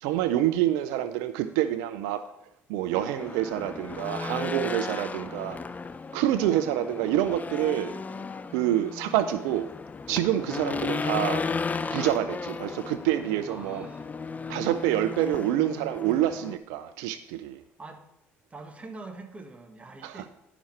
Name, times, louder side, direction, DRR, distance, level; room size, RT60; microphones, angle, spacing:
voice 1, 0.0-2.2 2.7-5.6 6.1-7.9 8.5-9.7 10.1-11.4 11.9-13.9 14.5-17.6 20.0-20.2, right 12 dB, 85° right, 12 dB, 0.4 m, -27 dB
Race car auto racing / Engine, 2.9-16.6, left 4 dB, 25° left, 0.5 m, -35 dB
voice 2, 4.9-5.8 10.6-11.1 13.5-14.1 17.8-18.0 18.5-20.3, right 3 dB, 25° right, 5 dB, 1.4 m, -45 dB
11.0 x 5.9 x 4.3 m, 0.83 s
supercardioid pair, 65°, 6 cm